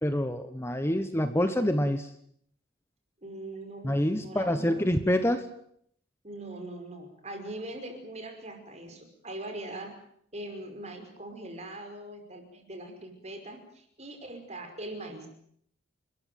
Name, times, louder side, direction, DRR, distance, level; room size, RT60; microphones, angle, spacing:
voice 1, 0.0-2.1 3.8-5.5, left 1 dB, 15° left, 9 dB, 1.2 m, -26 dB
voice 2, 3.2-4.8 6.2-9.9 10.3-15.3, right 1 dB, 35° right, 5 dB, 5.5 m, -41 dB
29.5 x 14.0 x 9.4 m, 0.68 s
head